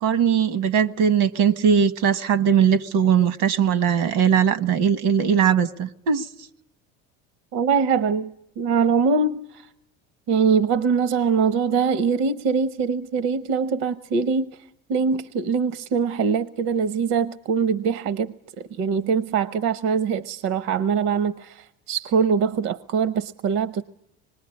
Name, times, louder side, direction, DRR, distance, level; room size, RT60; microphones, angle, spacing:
voice 1, 0.0-6.3, right 8 dB, 80° right, 1.4 m, -20 dB
voice 2, 7.5-9.6 10.3-14.6 14.9-18.3 18.8-23.8, right 5 dB, 65° right, 0.9 m, -23 dB
25.0 x 20.5 x 9.7 m
cardioid pair, 125°, 29 cm